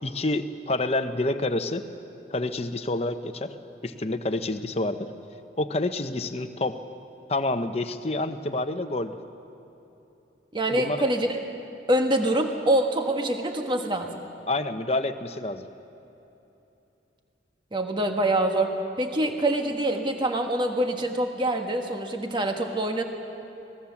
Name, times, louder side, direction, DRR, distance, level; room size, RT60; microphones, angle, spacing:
voice 1, 0.0-1.8 2.3-3.5 3.8-5.1 5.6-6.8 7.3-9.2 10.7-11.0 14.5-15.6, left 2 dB, 35° left, 8 dB, 0.9 m, -28 dB
voice 2, 10.5-11.4 11.9-14.2 17.7-23.0, right 1 dB, 25° right, 4 dB, 1.4 m, -25 dB
25.0 x 19.0 x 7.2 m, 2.9 s
head